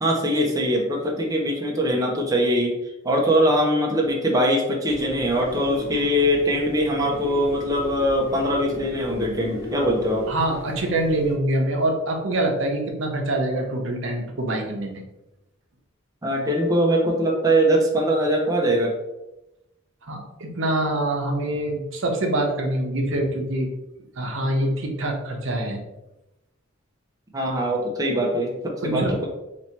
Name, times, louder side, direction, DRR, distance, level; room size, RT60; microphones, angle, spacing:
voice 1, 0.0-2.8 3.0-10.3 16.2-18.9 27.3-29.3, equal, 15° right, -1 dB, 0.6 m, -22 dB
sound 1, 4.9-11.4, left 1 dB, 55° left, 1.3 m, -37 dB
voice 2, 10.3-15.0 20.0-23.7 24.2-25.8 28.8-29.2, right 1 dB, 65° right, 2 dB, 0.8 m, -25 dB
3.0 x 2.8 x 4.4 m, 0.93 s
head